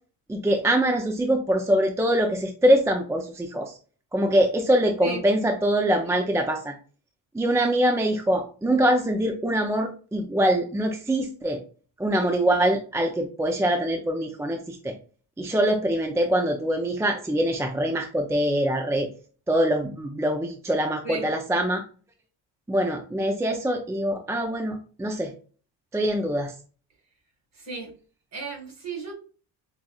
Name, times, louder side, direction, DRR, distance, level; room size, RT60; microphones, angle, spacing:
voice 1, 0.3-3.7 4.1-6.7 7.3-11.6 12.0-14.9 15.4-19.1 19.5-21.8 22.7-25.3 25.9-26.5, right 1 dB, 5° right, 3 dB, 0.4 m, -24 dB
voice 2, 27.5-27.9 28.3-29.1, right 4 dB, 35° right, 2 dB, 1.9 m, -34 dB
5.6 x 2.5 x 2.3 m, 0.39 s
cardioid pair, 105°, 48 cm